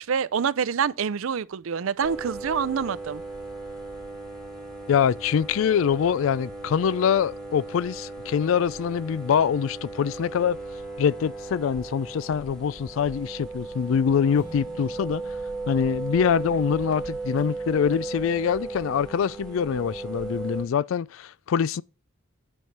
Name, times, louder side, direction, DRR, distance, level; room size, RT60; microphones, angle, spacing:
voice 1, 0.0-3.2, right 6 dB, 65° right, 0.4 m, -26 dB
sound 1, 2.0-20.6, right 3 dB, 5° left, 1.7 m, -36 dB
voice 2, 4.9-10.6 11.0-15.4 15.7-21.8, left 7 dB, 65° left, 0.3 m, -24 dB
sound 2, 14.4-17.0, left 1 dB, 35° left, 1.8 m, -51 dB
9.4 x 5.4 x 4.6 m
head